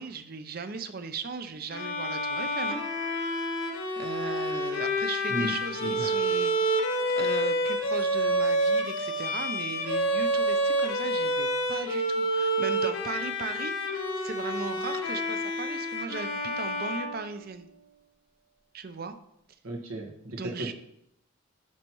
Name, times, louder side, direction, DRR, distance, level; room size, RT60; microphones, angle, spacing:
voice 1, 0.0-2.8 4.0-6.8 7.2-17.7 18.7-19.1 20.3-20.7, right 4 dB, 45° right, 10 dB, 0.6 m, -37 dB
Bowed string instrument, 1.7-17.8, equal, 65° left, 1.3 m, -28 dB
voice 2, 5.8-6.1 7.0-7.1 19.6-20.7, right 1 dB, 90° right, 1 dB, 1.4 m, -35 dB
11.5 x 5.6 x 3.1 m, 0.78 s
head